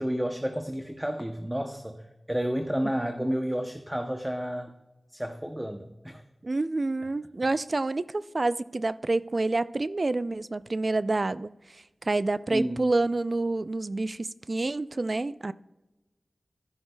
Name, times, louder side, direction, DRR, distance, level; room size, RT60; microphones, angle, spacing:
voice 1, 0.0-4.7 5.1-6.2 12.5-12.9, equal, 10° right, 0.7 m, -31 dB
voice 2, 6.4-15.5, right 2 dB, 50° right, 0.3 m, -28 dB
13.5 x 11.0 x 2.2 m
wide cardioid pair, 70°, 0 cm